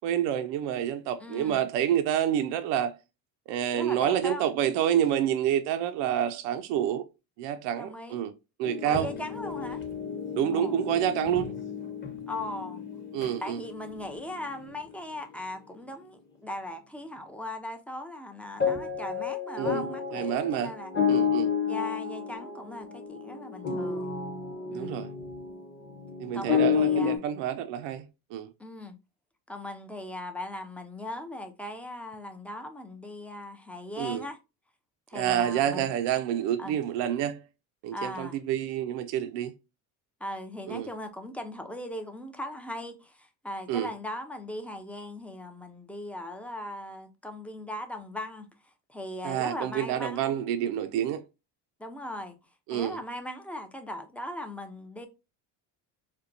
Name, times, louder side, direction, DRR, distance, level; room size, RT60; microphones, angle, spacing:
voice 1, 0.0-2.9 3.5-7.1 7.4-8.3 8.6-9.1 10.3-11.5 13.1-13.6 19.6-19.8 20.1-20.7 21.1-21.5 24.7-25.1 26.2-28.1 28.3-28.5 34.0-34.2 35.1-37.4 37.8-39.5 40.7-40.9 43.7-43.9 49.2-51.2 52.7-53.0, right 10 dB, 70° right, 0.6 m, -28 dB
voice 2, 1.2-1.6 3.7-4.5 7.8-8.2 8.9-9.8 10.5-10.8 12.3-12.8 13.4-20.9 21.7-24.1 24.7-25.0 26.3-27.2 28.6-29.0 29.5-34.4 35.1-35.9 36.6-36.8 37.9-38.4 40.2-50.3 51.8-52.4 52.7-55.1, left 1 dB, 5° left, 0.4 m, -39 dB
sound 1, 8.6-14.9 18.6-27.2, left 7 dB, 25° left, 1.0 m, -31 dB
4.4 x 2.2 x 2.5 m
cardioid pair, 110°, 44 cm